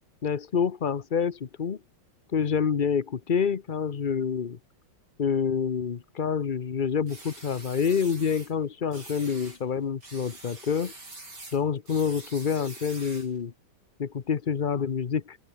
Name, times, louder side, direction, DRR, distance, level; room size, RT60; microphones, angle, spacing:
voice 1, 0.2-1.8 2.3-4.6 5.2-10.9 11.5-13.5 14.0-15.4, left 6 dB, 80° left, 0.4 m, -27 dB
sound 1, 7.1-8.5 8.9-9.6 10.0-13.4, right 2 dB, 50° right, 7.3 m, -45 dB
open air
omnidirectional pair, 2.3 m